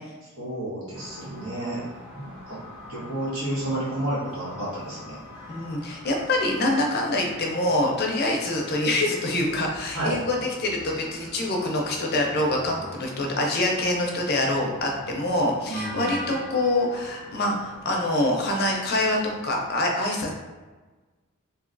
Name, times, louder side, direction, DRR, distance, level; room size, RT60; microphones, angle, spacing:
voice 1, 0.4-1.8 2.1-2.6 2.9-5.2 9.9-10.2 15.6-16.2, right 1 dB, 75° right, -8 dB, 1.3 m, -31 dB
sound 1, 0.9-19.8, equal, 50° right, 0.9 m, -43 dB
voice 2, 5.5-20.3, left 1 dB, 45° left, 0 dB, 0.5 m, -25 dB
2.9 x 2.7 x 2.5 m, 1.3 s
head